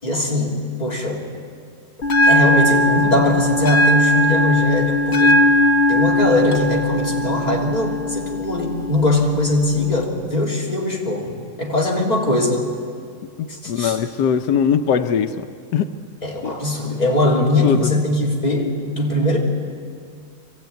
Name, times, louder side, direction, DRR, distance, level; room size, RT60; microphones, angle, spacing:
voice 1, 0.0-1.2 2.3-5.4 5.9-12.7 13.5-14.0 16.2-19.4, left 1 dB, 25° left, -3 dB, 3.4 m, -21 dB
Bell, 2.0-10.0, left 1 dB, 45° left, 1.3 m, -19 dB
voice 2, 13.4-15.5 15.7-15.9 16.4-16.5 17.4-17.9, left 7 dB, 90° left, 8 dB, 1.4 m, -21 dB
23.5 x 16.0 x 9.1 m, 2.2 s
omnidirectional pair, 1.7 m